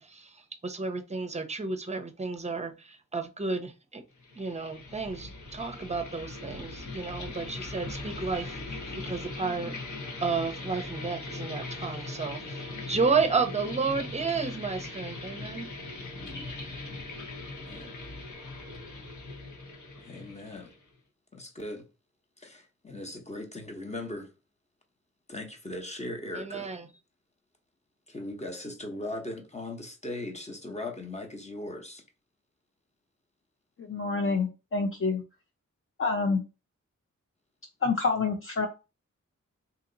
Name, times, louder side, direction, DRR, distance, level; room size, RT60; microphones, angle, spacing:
voice 1, 0.0-4.0 4.4-15.7 26.3-26.9, right 4 dB, 25° right, 0.6 m, -32 dB
sound 1, 4.2-20.9, left 3 dB, 80° left, 1.3 m, -40 dB
voice 2, 17.6-17.9 20.0-20.7 21.3-21.9 22.4-24.3 25.3-26.7 28.1-32.0, left 1 dB, 25° left, 0.9 m, -39 dB
voice 3, 33.8-35.2 36.0-36.4 37.8-38.7, left 4 dB, 45° left, 0.6 m, -27 dB
2.8 x 2.8 x 3.9 m
wide cardioid pair, 100°, 30 cm